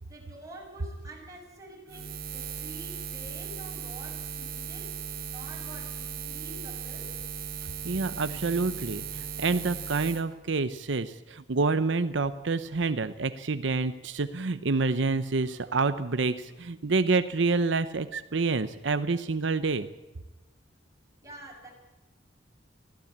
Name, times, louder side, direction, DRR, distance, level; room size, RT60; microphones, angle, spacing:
voice 1, 0.1-5.0 5.3-7.2 21.2-21.7, right 1 dB, 20° right, -1 dB, 7.5 m, -47 dB
Buzz, 1.9-10.2, right 7 dB, 55° right, 2.6 m, -37 dB
voice 2, 7.8-19.9, right 3 dB, 75° right, 12 dB, 0.8 m, -28 dB
24.0 x 15.5 x 8.6 m, 1.1 s
head